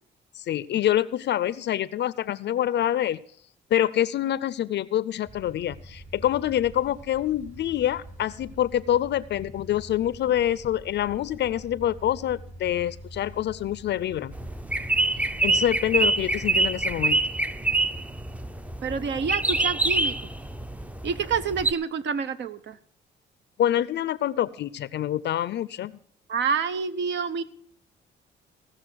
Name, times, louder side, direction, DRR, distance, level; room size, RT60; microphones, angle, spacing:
voice 1, 0.4-3.2 3.7-14.3 15.1-17.2 23.6-26.0, left 11 dB, 60° left, 18 dB, 0.5 m, -26 dB
sound 1, 5.2-15.6, right 1 dB, 45° right, 5.7 m, -45 dB
sound 2, 14.3-21.7, right 2 dB, 5° right, 0.5 m, -26 dB
voice 2, 18.8-20.1 21.0-22.8 26.3-27.4, right 6 dB, 65° right, 12 dB, 0.9 m, -28 dB
16.5 x 6.4 x 6.2 m, 0.63 s
cardioid pair, 90°, 20 cm